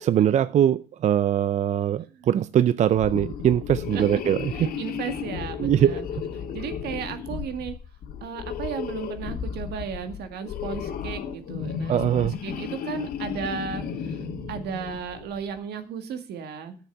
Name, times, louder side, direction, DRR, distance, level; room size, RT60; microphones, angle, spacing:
voice 1, 0.0-4.7 5.6-6.0 11.9-12.3, right 10 dB, 45° right, 0.4 m, -22 dB
sound 1, 2.9-15.4, left 7 dB, 60° left, 1.9 m, -34 dB
voice 2, 4.5-6.1 6.4-7.8 8.2-14.2 14.5-16.8, right 7 dB, 75° right, 2.0 m, -35 dB
9.5 x 7.1 x 8.4 m
cardioid pair, 110°, 17 cm